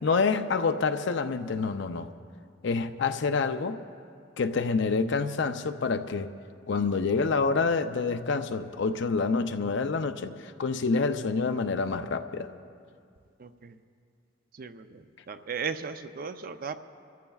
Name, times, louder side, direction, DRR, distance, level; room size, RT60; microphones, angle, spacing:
voice 1, 0.0-2.1 2.6-3.8 4.4-6.3 6.7-12.5, left 4 dB, 65° left, 8 dB, 0.6 m, -27 dB
voice 2, 13.4-13.8 14.5-16.8, right 5 dB, 50° right, 10 dB, 0.5 m, -36 dB
26.0 x 14.0 x 2.4 m, 2.3 s
head